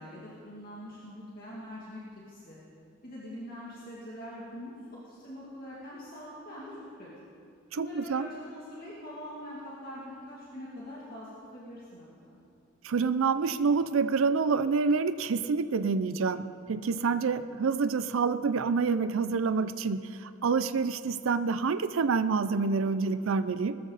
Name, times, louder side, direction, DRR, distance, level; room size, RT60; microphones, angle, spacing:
voice 1, 0.0-2.0 2.3-2.6 3.0-4.8 5.1-7.1 7.7-12.4 16.9-17.3, equal, 45° left, -7 dB, 2.4 m, -44 dB
voice 2, 7.7-8.3 12.8-23.7, right 5 dB, 80° right, 12 dB, 0.5 m, -27 dB
19.5 x 13.5 x 4.0 m, 2.5 s
head